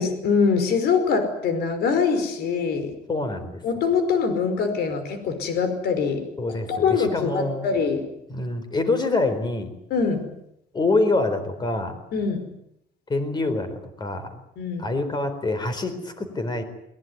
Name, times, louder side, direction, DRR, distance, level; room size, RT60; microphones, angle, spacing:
voice 1, 0.0-2.9 3.6-6.2 6.7-8.0 9.9-10.2 12.1-12.4 14.6-14.9, left 5 dB, 55° left, 9 dB, 5.2 m, -23 dB
voice 2, 3.1-3.6 6.4-7.7 8.3-9.7 10.7-12.0 13.1-13.7 14.0-14.4 14.8-16.6, left 2 dB, 20° left, 10 dB, 4.3 m, -25 dB
22.5 x 20.5 x 9.6 m, 0.80 s
cardioid pair, 140°, 19 cm